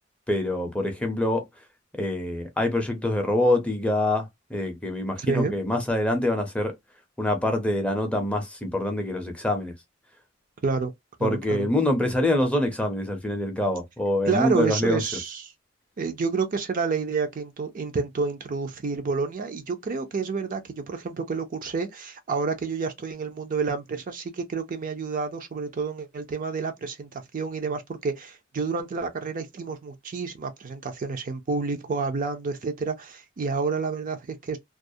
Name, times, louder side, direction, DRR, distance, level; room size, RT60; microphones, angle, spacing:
voice 1, 0.3-1.4 2.0-6.7 7.2-9.7 11.2-15.0, left 1 dB, 5° left, 0.5 m, -25 dB
voice 2, 5.2-5.5 10.6-10.9 11.2-11.7 14.3-15.5 16.0-34.6, right 4 dB, 45° right, 0.4 m, -29 dB
2.3 x 2.0 x 2.6 m
head